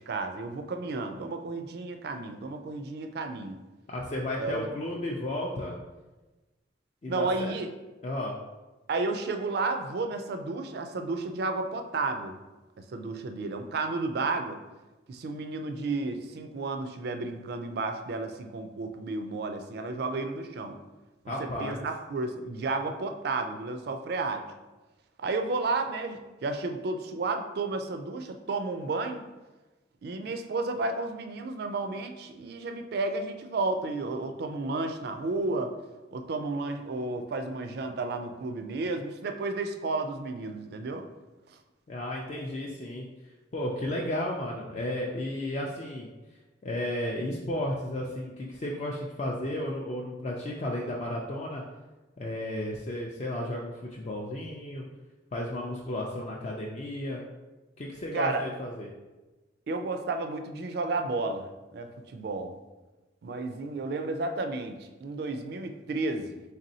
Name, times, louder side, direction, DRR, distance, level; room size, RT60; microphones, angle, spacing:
voice 1, 0.1-3.6 4.4-4.7 7.1-7.7 8.9-12.4 12.8-14.6 15.1-20.8 21.2-24.4 25.2-29.2 30.0-35.7 36.1-41.1 41.5-41.6 58.1-58.4 59.7-62.6 63.2-66.4, right 3 dB, 55° right, 6 dB, 0.3 m, -32 dB
voice 2, 3.9-5.8 7.0-7.5 8.0-8.4 21.3-21.8 41.9-43.1 43.5-46.1 46.6-51.6 52.2-54.8 55.3-57.2 57.8-58.9, left 1 dB, 35° left, -2 dB, 0.4 m, -33 dB
4.0 x 3.3 x 2.7 m, 1.1 s
head